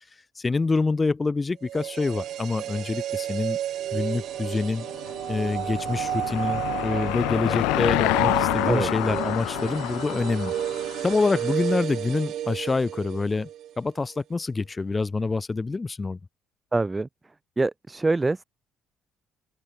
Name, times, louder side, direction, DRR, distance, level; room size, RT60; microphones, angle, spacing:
voice 1, 0.4-3.6 3.9-4.9 5.3-10.5 11.0-13.5 13.8-16.2, left 3 dB, 25° left, 0.3 m, -26 dB
sound 1, 1.6-13.7 14.0-14.1, right 11 dB, 65° right, 0.4 m, -32 dB
Car passing by / Engine, 4.8-11.6, left 23 dB, 85° left, 0.9 m, -28 dB
voice 2, 16.7-17.1 17.6-18.4, right 3 dB, 20° right, 0.6 m, -24 dB
open air
supercardioid pair, 75°, 0 cm